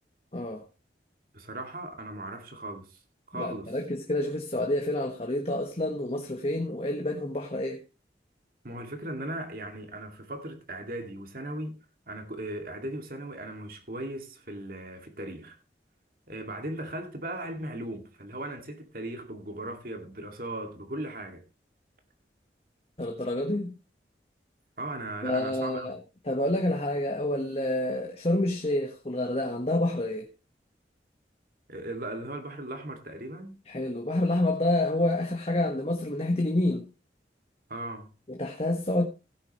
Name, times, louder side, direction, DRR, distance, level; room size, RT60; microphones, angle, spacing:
voice 1, 0.3-0.6 3.4-7.8 23.0-23.7 25.2-26.0 26.3-30.3 33.7-36.9 38.3-39.0, left 1 dB, 35° left, 1.3 m, -28 dB
voice 2, 1.3-3.0 3.3-3.7 8.6-11.8 12.1-15.6 16.3-21.4 24.8-25.9 31.7-33.6 37.7-38.1, right 1 dB, 55° right, 2.3 m, -37 dB
16.5 x 9.1 x 3.1 m
head